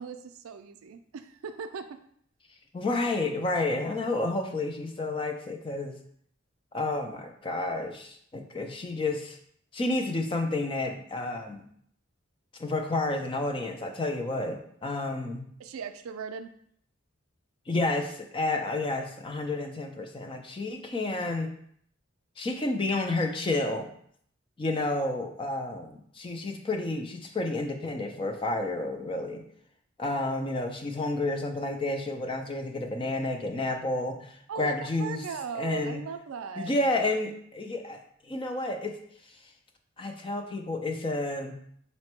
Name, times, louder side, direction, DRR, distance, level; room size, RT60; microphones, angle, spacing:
voice 1, 0.0-2.0 15.6-16.5 34.5-36.8, right 6 dB, 85° right, 9 dB, 0.4 m, -38 dB
voice 2, 2.7-6.0 6.7-9.4 9.7-11.6 12.6-15.5 17.7-21.5 22.4-23.9 24.6-29.4 30.0-35.2 35.5-36.0 36.6-39.0 39.3-39.4 40.0-41.6, left 2 dB, 25° left, 4 dB, 0.4 m, -30 dB
4.1 x 2.2 x 4.4 m, 0.65 s
head